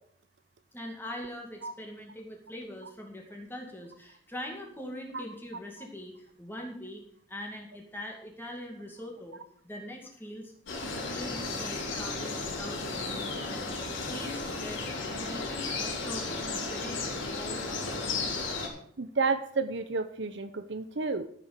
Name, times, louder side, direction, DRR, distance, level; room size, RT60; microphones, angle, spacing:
voice 1, 0.7-7.0 7.3-9.4 9.6-10.5 11.1-13.7 14.1-14.9 15.3-18.2, left 1 dB, 10° left, 0 dB, 2.3 m, -42 dB
sound 1, 10.7-18.7, left 3 dB, 80° left, 4.2 m, -34 dB
voice 2, 19.0-21.3, right 4 dB, 65° right, 11 dB, 0.8 m, -31 dB
14.0 x 6.9 x 6.7 m, 0.62 s
head